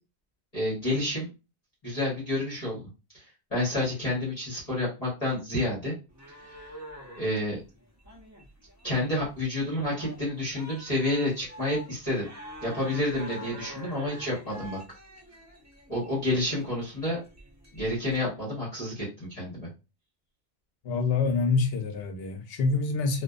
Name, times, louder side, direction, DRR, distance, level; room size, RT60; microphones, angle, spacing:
voice 1, 0.5-1.3 1.8-2.9 3.1-5.9 6.5-6.7 7.1-7.6 8.8-12.3 12.6-14.8 15.9-17.2 17.7-19.7, left 1 dB, 35° left, 1.1 m, -29 dB
sound 1, 6.1-18.2, equal, 25° right, 0.4 m, -46 dB
voice 2, 20.8-23.2, left 4 dB, 70° left, 0.8 m, -26 dB
2.5 x 2.2 x 2.3 m
omnidirectional pair, 1.1 m